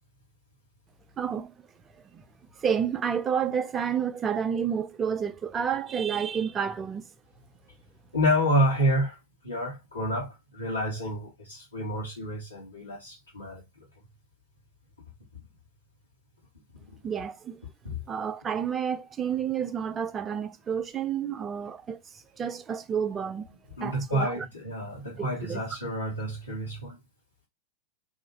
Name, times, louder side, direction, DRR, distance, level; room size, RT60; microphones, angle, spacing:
voice 1, 1.2-1.5 1.9-2.2 2.6-7.0 17.0-17.6 18.1-23.5 23.8-24.5 25.2-25.6, right 7 dB, 20° right, 0.4 m, -30 dB
voice 2, 8.1-9.2 9.4-13.6 17.8-17.9 23.8-27.0, equal, 80° left, 1.1 m, -29 dB
2.6 x 2.4 x 3.9 m
figure-of-eight pair, 90°, 0 cm